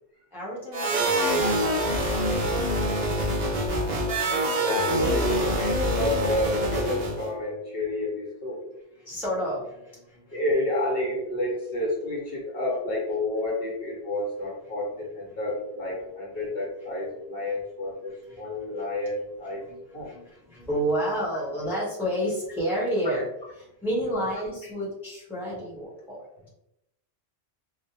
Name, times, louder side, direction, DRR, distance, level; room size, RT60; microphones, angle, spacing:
voice 1, 0.3-1.9 9.0-10.4 17.5-17.6 18.3-18.5 18.8-18.9 19.7-19.8 20.0-23.3 23.6-26.2, equal, ahead, -6 dB, 0.6 m, -30 dB
sound 1, 0.7-7.3, right 1 dB, 50° right, 0.6 m, -25 dB
voice 2, 4.0-8.6 10.3-19.6 19.9-20.1, left 1 dB, 60° left, -4 dB, 1.1 m, -30 dB
2.3 x 2.1 x 2.7 m, 0.85 s
omnidirectional pair, 1.1 m